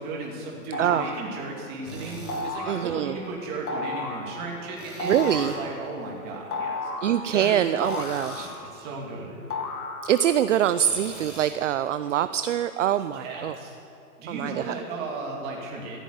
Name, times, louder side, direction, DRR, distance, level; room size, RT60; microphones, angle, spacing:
voice 1, 0.0-6.9 7.3-7.6 8.4-9.5 13.1-13.8 14.2-16.0, right 3 dB, 20° right, -2 dB, 2.7 m, -35 dB
sound 1, 0.7-1.3 2.3-2.8 3.7-4.3 5.0-5.6 6.5-7.2 7.8-8.8 9.5-10.3, left 2 dB, 75° left, 2.0 m, -32 dB
Tools, 1.9-2.4 4.8-5.6 7.8-8.5 10.7-11.6, right 1 dB, ahead, 3.1 m, -42 dB
voice 2, 2.7-3.2 5.0-5.5 7.0-8.5 10.0-13.5 14.3-14.7, right 10 dB, 55° right, 12 dB, 0.5 m, -24 dB
14.5 x 8.3 x 9.4 m, 3.0 s
hypercardioid pair, 155°, 44 cm